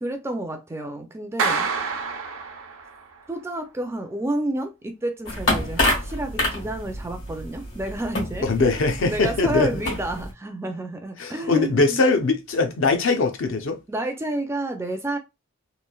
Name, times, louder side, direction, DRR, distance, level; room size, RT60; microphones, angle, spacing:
voice 1, 0.0-1.7 3.3-8.8 9.1-12.0 13.9-15.2, right 1 dB, 10° right, 0.3 m, -30 dB
Clapping, 1.4-3.1, right 5 dB, 70° right, 0.5 m, -27 dB
sound 1, 5.3-10.3, left 1 dB, 80° left, 1.6 m, -28 dB
voice 2, 8.4-9.8 11.2-13.8, left 3 dB, 60° left, 0.5 m, -21 dB
3.1 x 2.4 x 2.2 m
head